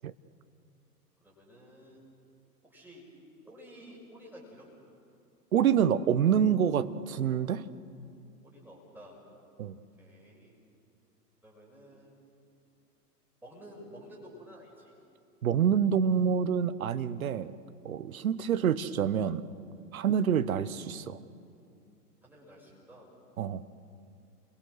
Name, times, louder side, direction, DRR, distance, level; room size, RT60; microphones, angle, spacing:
voice 1, 1.2-2.0 2.6-3.1 3.4-4.7 8.4-9.2 10.0-10.5 11.4-12.2 13.4-14.9 22.2-23.1, equal, 5° right, -3 dB, 6.2 m, -51 dB
voice 2, 5.5-7.7 9.6-9.7 15.4-17.5 17.8-19.4 19.9-21.2 23.4-23.6, right 8 dB, 55° right, 14 dB, 1.1 m, -27 dB
29.5 x 22.5 x 6.5 m, 2.6 s
figure-of-eight pair, 105°, 49 cm